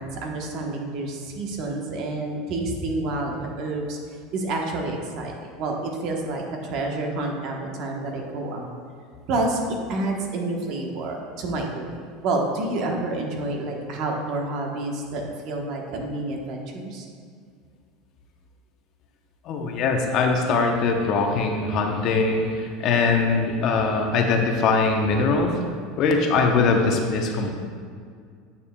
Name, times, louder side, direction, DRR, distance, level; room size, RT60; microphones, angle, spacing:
voice 1, 0.0-4.0 4.3-8.7 9.3-11.9 12.2-17.1, right 2 dB, 50° right, 1 dB, 1.1 m, -29 dB
voice 2, 19.4-25.5 26.0-27.5, left 4 dB, 45° left, 3 dB, 0.8 m, -22 dB
9.7 x 6.9 x 2.3 m, 2.1 s
supercardioid pair, 145°, 0 cm